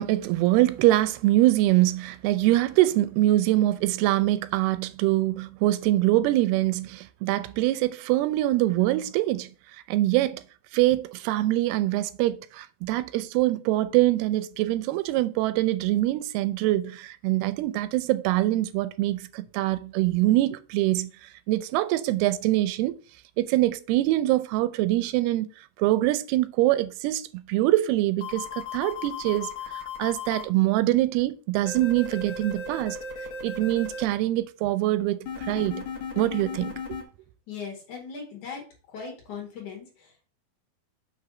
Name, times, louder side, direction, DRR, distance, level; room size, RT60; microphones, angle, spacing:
voice 1, 0.0-9.5 9.9-10.4 10.7-21.1 21.5-23.0 23.4-25.5 25.8-29.5 30.0-33.0 33.4-35.9 36.2-37.0, right 16 dB, 85° right, 2.5 m, -24 dB
sound 1, 28.2-30.4 31.7-34.0 35.3-37.0, left 5 dB, 80° left, 1.1 m, -35 dB
voice 2, 37.5-38.6 38.9-40.3, left 6 dB, 55° left, 3.1 m, -39 dB
6.7 x 3.3 x 6.0 m
omnidirectional pair, 4.4 m